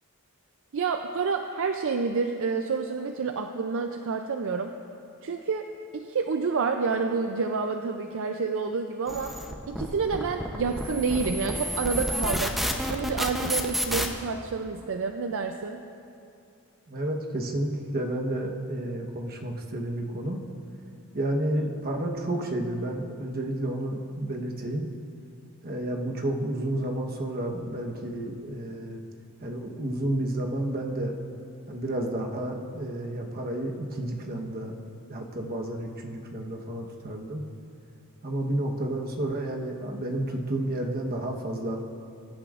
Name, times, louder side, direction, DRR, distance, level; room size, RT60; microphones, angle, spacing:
voice 1, 0.7-4.7 5.2-5.7 5.9-9.3 9.7-12.6 12.9-15.8, right 4 dB, 60° right, 5 dB, 0.5 m, -29 dB
sound 1, 9.1-14.1, equal, ahead, 0.7 m, -30 dB
voice 2, 16.9-20.4 21.1-24.9 25.6-29.0 29.4-31.2 31.7-34.8 35.1-37.4 38.2-41.8, right 1 dB, 45° right, 1 dB, 1.1 m, -31 dB
21.5 x 10.0 x 2.5 m, 2.6 s
head